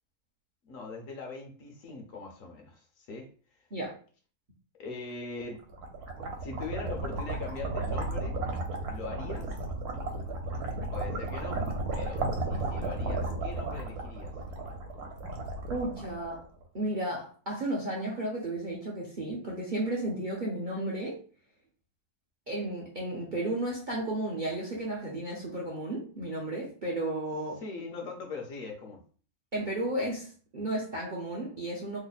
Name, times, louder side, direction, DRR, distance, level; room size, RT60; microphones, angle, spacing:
voice 1, 0.6-3.3 3.6-3.7 4.8-5.7 6.4-8.4 8.9-9.5 10.9-11.6 11.9-14.3 27.6-29.0, left 4 dB, 65° left, 2 dB, 1.0 m, -41 dB
sound 1, 5.5-16.6, right 2 dB, 75° right, 1.2 m, -34 dB
voice 2, 15.7-16.5 16.7-21.2 22.5-27.6 29.5-32.0, right 1 dB, 50° right, -4 dB, 0.6 m, -33 dB
3.2 x 2.1 x 3.9 m, 0.41 s
omnidirectional pair, 1.7 m